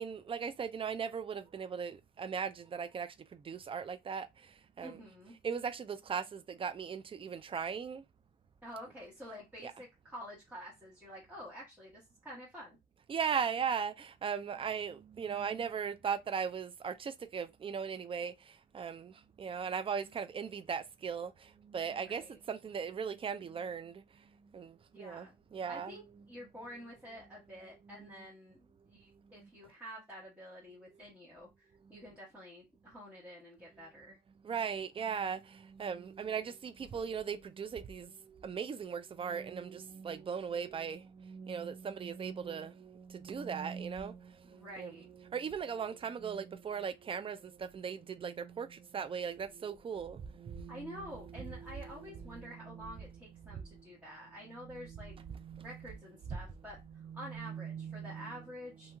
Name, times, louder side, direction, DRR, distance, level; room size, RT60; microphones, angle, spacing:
voice 1, 0.0-5.0 5.4-8.0 9.6-9.7 13.1-25.3 25.5-26.0 27.9-28.0 29.2-29.5 31.8-32.0 34.4-44.9 45.3-53.1 53.4-53.9 54.6-55.9 56.9-58.4 58.9-59.0, right 7 dB, 25° right, 0.4 m, -39 dB
voice 2, 4.8-5.3 8.6-12.8 22.0-22.4 24.9-25.3 25.7-26.0 26.3-34.2 44.4-45.1 50.7-55.1 55.6-59.0, equal, 10° right, 1.2 m, -49 dB
2.9 x 2.7 x 2.3 m
cardioid pair, 90°, 20 cm